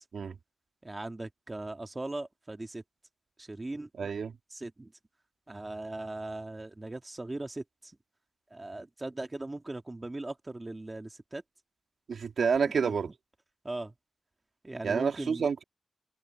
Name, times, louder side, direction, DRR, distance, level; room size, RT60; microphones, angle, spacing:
voice 1, 0.8-2.8 3.4-3.9 4.5-4.9 5.5-7.9 8.5-11.4 12.8-12.9 13.6-13.9 14.6-15.5, right 2 dB, 25° right, 2.1 m, -39 dB
voice 2, 4.0-4.3 12.1-13.1 14.8-15.6, right 6 dB, 90° right, 2.2 m, -28 dB
wide cardioid pair, 85°, 0 cm